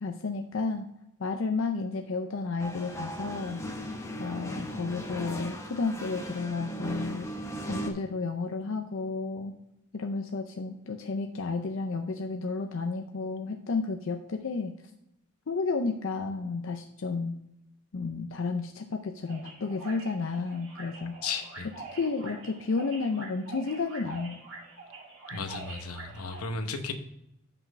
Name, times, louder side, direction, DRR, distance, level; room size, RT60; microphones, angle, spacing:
voice 1, 0.0-0.9 1.2-3.6 4.2-7.3 7.6-9.5 9.9-14.7 15.5-17.4 17.9-21.2 21.9-24.4, left 4 dB, 60° left, 4 dB, 0.5 m, -32 dB
sound 1, 2.6-7.9, right 1 dB, 10° left, 0.7 m, -37 dB
sound 2, 19.3-26.4, right 3 dB, 60° right, 2.6 m, -45 dB
voice 2, 21.2-21.7 25.3-26.9, left 4 dB, 85° left, 7 dB, 0.9 m, -34 dB
6.1 x 5.7 x 5.3 m, 0.81 s
head